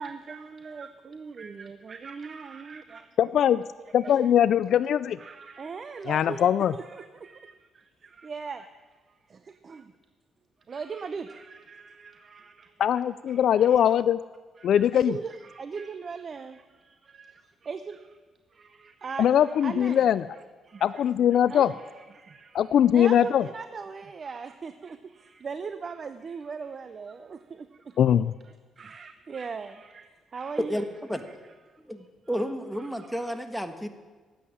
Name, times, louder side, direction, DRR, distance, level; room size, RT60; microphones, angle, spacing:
voice 1, 0.0-3.6 4.0-4.3 5.2-9.9 10.7-12.7 13.3-13.8 14.6-18.2 18.5-21.0 21.3-28.1 28.4-30.9 31.1-32.1 32.7-33.3, right 5 dB, 45° right, 11 dB, 0.7 m, -40 dB
voice 2, 3.2-3.6 3.9-5.2 6.1-6.7 12.8-14.2 14.6-15.1 19.2-20.3 20.8-21.7 22.5-23.4 28.0-28.3, left 9 dB, 70° left, 15 dB, 0.3 m, -21 dB
voice 3, 30.6-31.2 31.9-33.9, equal, ahead, 9 dB, 1.4 m, -31 dB
12.5 x 8.6 x 9.9 m, 1.3 s
cardioid pair, 90°, 0 cm